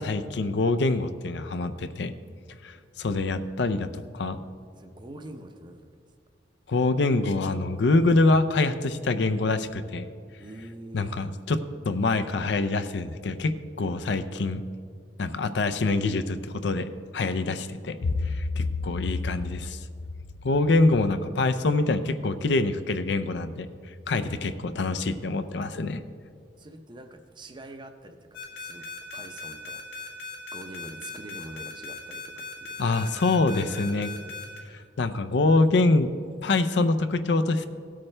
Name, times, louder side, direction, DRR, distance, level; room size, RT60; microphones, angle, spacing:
voice 1, 0.0-2.1 2.6-4.4 6.7-10.1 10.9-14.6 15.2-19.8 20.4-23.7 24.1-26.0 32.8-34.1 35.0-36.1 36.4-37.7, left 3 dB, 65° left, 11 dB, 0.5 m, -25 dB
voice 2, 4.8-5.9 10.4-11.1 18.9-19.0 26.6-30.2 30.5-32.8, right 1 dB, 25° right, 7 dB, 0.6 m, -45 dB
sound 1, 28.3-34.6, left 4 dB, 90° left, 1.9 m, -38 dB
16.5 x 8.7 x 3.3 m, 2.2 s
head